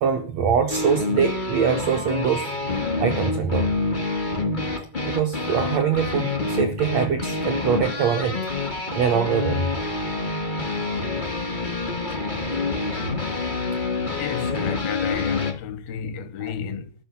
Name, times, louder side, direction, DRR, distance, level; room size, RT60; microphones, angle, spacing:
voice 1, 0.0-2.5 3.0-3.7 5.0-8.5 8.9-9.7 16.4-16.5, right 7 dB, 75° right, 1.6 m, -23 dB
sound 1, 0.7-15.5, left 3 dB, 50° left, 0.5 m, -27 dB
voice 2, 14.2-16.9, left 8 dB, 90° left, 2.9 m, -31 dB
12.5 x 6.0 x 7.1 m
omnidirectional pair, 4.2 m